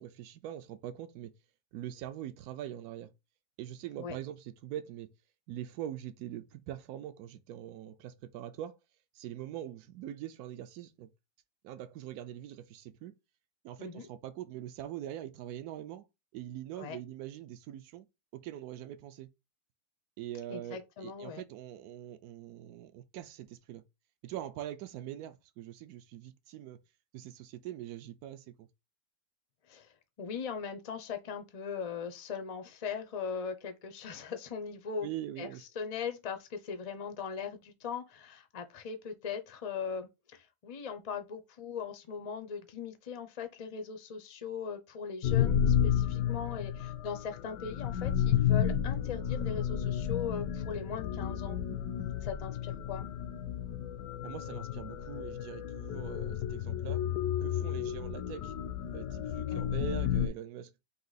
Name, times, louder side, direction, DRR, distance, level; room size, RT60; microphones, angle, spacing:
voice 1, 0.0-1.3 1.7-3.1 3.6-5.1 5.5-8.8 9.1-11.1 11.6-13.1 13.6-16.1 16.3-18.1 18.4-19.3 20.2-23.8 24.2-26.8 27.1-28.7 35.0-35.6 54.2-57.0 57.4-58.5 58.9-60.7, right 11 dB, 75° right, 1.0 m, -43 dB
voice 2, 20.5-21.4 29.7-29.9 30.2-35.1 35.4-35.5 35.8-51.6 52.2-53.1 59.5-59.6, left 6 dB, 60° left, 0.3 m, -39 dB
sound 1, 45.2-60.3, left 9 dB, 85° left, 1.1 m, -32 dB
3.7 x 2.7 x 3.9 m
omnidirectional pair, 1.6 m